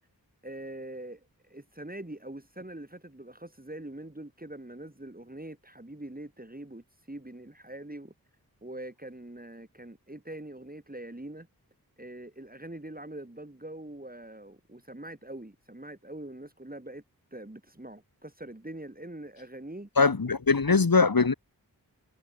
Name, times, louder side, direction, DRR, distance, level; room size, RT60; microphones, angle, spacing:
voice 1, 0.4-8.1 8.6-11.5 12.0-17.0 17.3-19.9, right 1 dB, 25° right, 7.2 m, -43 dB
voice 2, 20.0-21.3, left 4 dB, 70° left, 2.7 m, -22 dB
wide cardioid pair, 45°, 37 cm